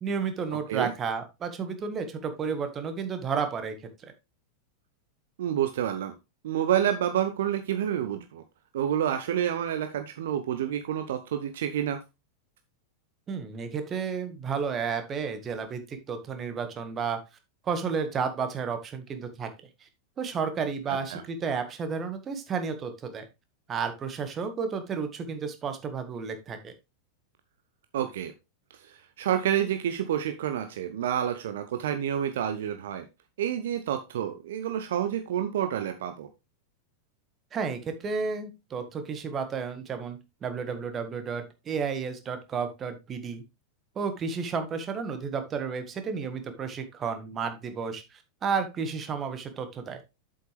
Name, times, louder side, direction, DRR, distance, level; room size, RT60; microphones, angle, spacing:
voice 1, 0.0-3.7 4.0-4.1 13.3-17.2 17.6-19.5 19.8-19.9 20.2-23.2 23.7-26.7 37.5-43.4 43.9-50.0, right 5 dB, 25° right, 8 dB, 1.7 m, -32 dB
voice 2, 5.4-6.1 6.4-8.4 8.7-12.0 21.1-21.2 27.9-28.3 28.7-33.1 33.4-36.3, right 10 dB, 60° right, 8 dB, 0.8 m, -29 dB
7.9 x 7.8 x 3.4 m, 0.24 s
figure-of-eight pair, 90°, 0 cm